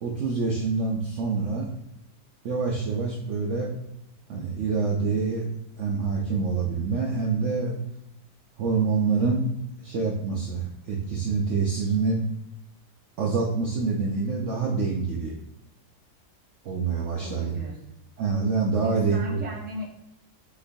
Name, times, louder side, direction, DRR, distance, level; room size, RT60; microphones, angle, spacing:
voice 1, 0.0-1.7 2.4-3.7 4.3-5.4 5.8-7.8 8.6-9.5 9.8-12.2 13.2-15.3 16.6-17.5 18.2-19.4, right 4 dB, 65° right, -1 dB, 0.7 m, -26 dB
voice 2, 17.2-17.8 18.8-19.9, left 1 dB, 10° right, -3 dB, 0.5 m, -37 dB
6.1 x 3.0 x 2.6 m, 0.81 s
omnidirectional pair, 1.8 m